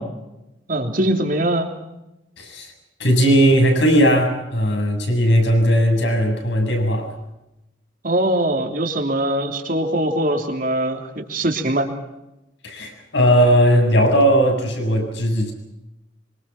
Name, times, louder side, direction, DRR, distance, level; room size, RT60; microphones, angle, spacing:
voice 1, 0.7-1.7 8.0-11.9, right 1 dB, 50° right, 4 dB, 3.3 m, -22 dB
voice 2, 2.4-2.7 3.0-7.1 12.6-15.5, equal, 70° left, 3 dB, 7.3 m, -17 dB
25.5 x 25.5 x 6.0 m, 0.92 s
head